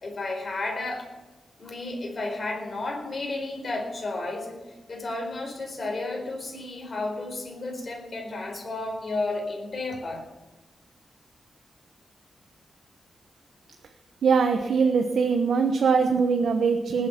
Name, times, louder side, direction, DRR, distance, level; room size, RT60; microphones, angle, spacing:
voice 1, 0.0-1.1 1.6-4.6 4.9-10.2, left 2 dB, 40° left, 2 dB, 4.5 m, -32 dB
voice 2, 14.2-17.1, right 5 dB, 85° right, 4 dB, 1.1 m, -22 dB
19.5 x 8.6 x 5.9 m, 1.1 s
wide cardioid pair, 125°, 0 cm